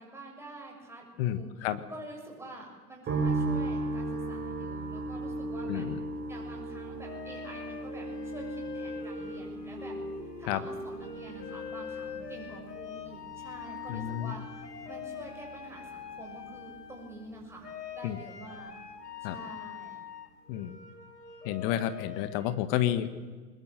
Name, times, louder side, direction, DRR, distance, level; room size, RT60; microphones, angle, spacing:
voice 1, 0.0-5.9 6.3-10.0 10.4-17.7 18.0-18.8 19.2-20.0, right 2 dB, 5° right, -1 dB, 6.9 m, -48 dB
voice 2, 1.2-1.8 5.7-6.0 10.5-10.6 13.9-14.3 18.0-18.2 19.2-19.3 20.5-20.8 21.4-23.2, left 12 dB, 35° left, 12 dB, 1.5 m, -30 dB
sound 1, 3.1-18.3 18.6-19.4, right 2 dB, 20° right, 4.7 m, -38 dB
sound 2, 4.6-5.8 7.0-17.3 17.6-22.6, left 6 dB, 75° left, 2.7 m, -43 dB
22.5 x 21.0 x 7.7 m, 1.4 s
figure-of-eight pair, 110°, 48 cm